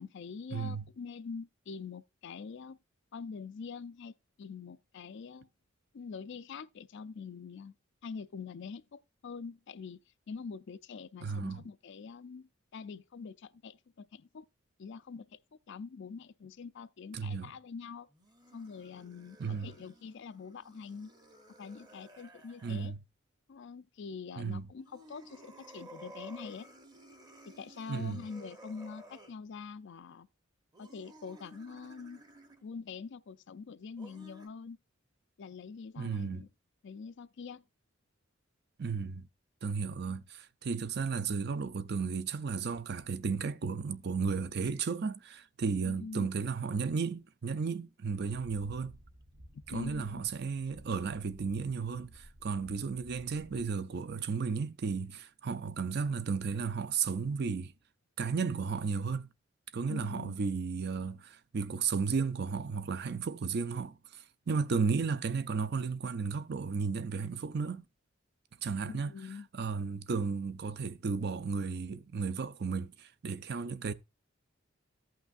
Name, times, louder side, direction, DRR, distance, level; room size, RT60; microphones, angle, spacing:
voice 1, 0.0-2.8 3.1-5.5 5.9-7.7 8.0-10.0 10.3-14.5 14.8-15.4 15.7-18.1 18.5-21.1 21.6-22.9 23.5-26.7 27.4-30.3 30.8-32.2 32.6-34.8 35.4-36.5 36.8-37.6 45.8-46.3 49.7-50.2 59.9-60.4 68.9-69.5, left 5 dB, 60° left, 0.4 m, -44 dB
voice 2, 0.5-0.8 11.2-11.6 17.1-17.5 19.4-19.7 22.6-23.0 24.4-24.7 27.9-28.2 36.0-36.4 38.8-39.3 39.6-49.0 49.7-57.7 58.2-59.3 59.7-67.8 68.6-69.1 69.5-73.9, right 5 dB, 50° right, 0.5 m, -34 dB
sound 1, 18.1-22.9 24.7-29.4 30.7-32.7 34.0-34.5, right 1 dB, 20° right, 0.9 m, -55 dB
sound 2, 48.2-53.7, equal, 75° right, 1.2 m, -55 dB
14.5 x 5.8 x 2.5 m
head